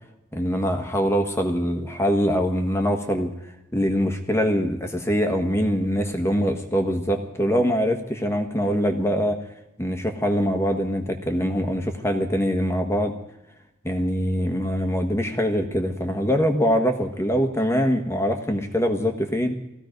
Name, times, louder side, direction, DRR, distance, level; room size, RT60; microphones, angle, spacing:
voice 1, 0.3-3.3 3.7-9.4 9.8-13.1 13.8-19.5, equal, 10° left, 5 dB, 1.4 m, -23 dB
18.0 x 15.0 x 5.3 m, 0.90 s
head